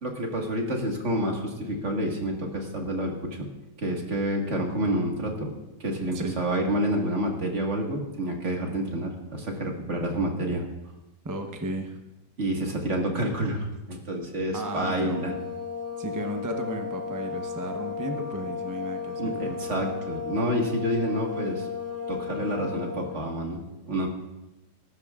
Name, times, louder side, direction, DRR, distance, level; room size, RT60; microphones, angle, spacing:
voice 1, 0.0-3.5 3.8-5.5 5.8-10.6 12.4-15.3 19.2-21.7 22.1-24.1, right 1 dB, 45° right, 0 dB, 1.9 m, -28 dB
voice 2, 11.2-12.0 14.5-15.3 16.0-19.6, right 1 dB, 20° right, 4 dB, 0.5 m, -34 dB
sound 1, 14.5-23.3, left 5 dB, 75° left, 1.8 m, -34 dB
19.5 x 11.5 x 2.4 m, 0.97 s
omnidirectional pair, 1.8 m